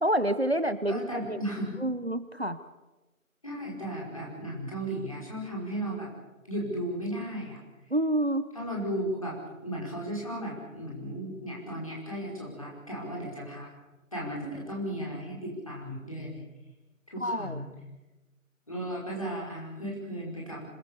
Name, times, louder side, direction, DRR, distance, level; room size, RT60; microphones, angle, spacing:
voice 1, 0.0-1.4 1.8-2.6 7.9-8.5 17.2-17.6, right 1 dB, 45° right, 13 dB, 0.9 m, -28 dB
voice 2, 0.9-1.8 3.4-6.1 6.5-7.6 8.5-13.7 14.1-16.4 17.1-17.7 18.7-20.7, right 1 dB, 25° left, -4 dB, 5.3 m, -35 dB
26.5 x 20.0 x 6.9 m, 1.1 s
figure-of-eight pair, 175°, 42 cm